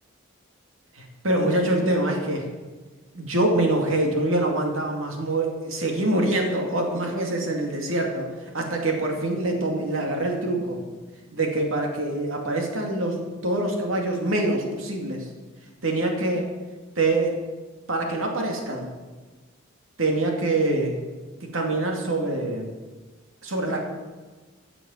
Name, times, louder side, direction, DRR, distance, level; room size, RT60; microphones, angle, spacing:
voice 1, 1.2-2.5 3.1-8.3 8.5-10.8 11.3-15.3 15.8-16.5 17.0-17.4 17.9-18.9 20.0-20.9 21.5-22.7 23.4-23.9, right 2 dB, 85° right, 1 dB, 2.5 m, -25 dB
13.5 x 7.0 x 7.4 m, 1.3 s
head